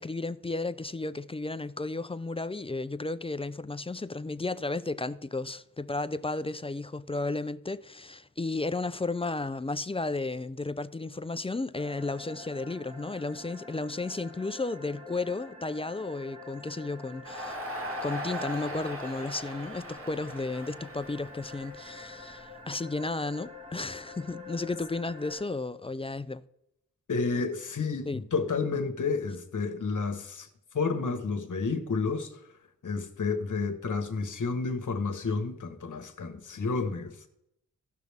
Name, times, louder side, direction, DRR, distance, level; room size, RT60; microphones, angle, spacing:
voice 1, 0.0-17.6 18.0-26.4 28.1-28.2, left 3 dB, 15° left, 0.4 m, -33 dB
sound 1, 11.7-25.4, left 3 dB, 20° right, 1.8 m, -47 dB
Crowd, 17.2-22.4, equal, 40° right, 2.0 m, -39 dB
voice 2, 27.1-30.5 30.7-32.4 32.8-37.3, left 4 dB, 65° left, 1.4 m, -30 dB
16.0 x 6.0 x 3.5 m
cardioid pair, 65°, 33 cm